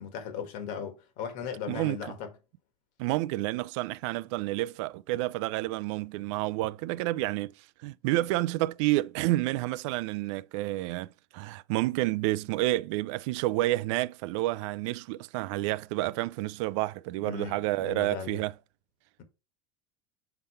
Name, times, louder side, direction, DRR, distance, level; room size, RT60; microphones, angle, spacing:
voice 1, 0.0-2.3 17.2-18.4, left 7 dB, 55° left, 1.6 m, -37 dB
voice 2, 3.0-18.5, right 17 dB, 65° right, 0.4 m, -29 dB
6.8 x 3.8 x 4.3 m
supercardioid pair, 140°, 16 cm